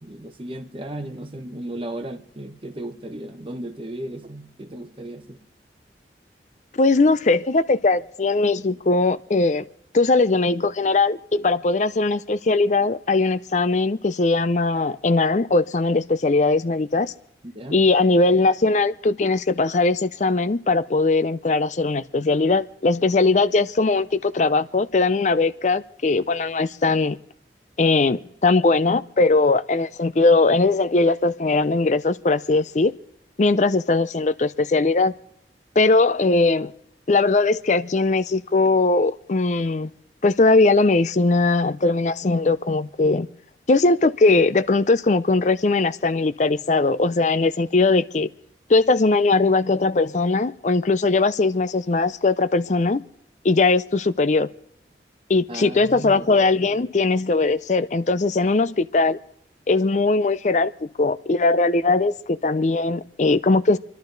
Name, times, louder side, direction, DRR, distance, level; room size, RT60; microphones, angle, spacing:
voice 1, 0.0-5.4 17.4-17.8 55.5-56.3, right 1 dB, 30° right, 0.9 m, -35 dB
voice 2, 6.7-9.6 9.9-17.1 17.7-27.2 27.8-32.9 33.4-35.1 35.8-36.7 37.1-39.9 40.2-43.3 43.7-48.3 48.7-53.0 53.4-54.5 55.3-59.2 59.7-60.7 61.0-63.8, left 3 dB, 40° left, 0.5 m, -20 dB
28.0 x 11.5 x 3.9 m
head